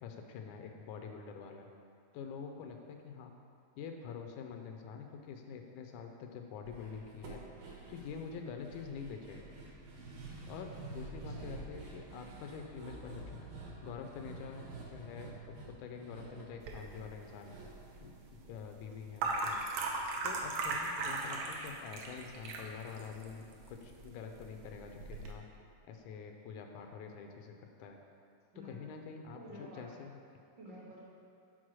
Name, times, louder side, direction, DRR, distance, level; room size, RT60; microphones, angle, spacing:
voice 1, 0.0-1.7 2.1-3.3 3.8-7.4 7.9-9.5 10.5-13.4 13.8-17.6 18.0-19.6 20.2-25.5 25.8-28.0 28.6-30.2, left 6 dB, 80° left, 4 dB, 1.9 m, -46 dB
sound 1, 6.7-18.9 19.2-19.3 19.7-19.8, right 3 dB, 90° right, 2.7 m, -49 dB
voice 2, 11.2-11.6 28.5-28.8 29.3-29.9 30.6-31.0, equal, 55° right, -8 dB, 1.3 m, -50 dB
sound 2, 16.6-25.3, right 3 dB, 75° right, 1.7 m, -39 dB
6.3 x 4.4 x 6.0 m, 2.4 s
omnidirectional pair, 3.5 m